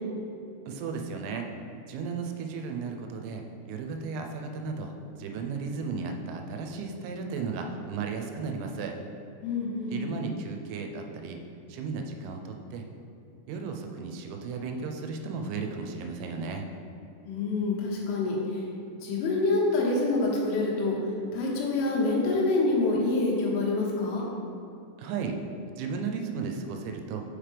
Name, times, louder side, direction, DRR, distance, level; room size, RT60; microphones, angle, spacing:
voice 1, 0.7-1.5 1.9-9.0 9.9-11.4 11.7-12.8 13.5-16.7 25.0-25.4 25.8-27.2, right 5 dB, 85° right, 3 dB, 3.1 m, -35 dB
voice 2, 9.4-10.1 17.3-18.7 19.0-21.0 21.3-24.3, left 3 dB, 80° left, -4 dB, 3.6 m, -26 dB
7.3 x 5.2 x 3.3 m, 2.7 s
omnidirectional pair, 5.8 m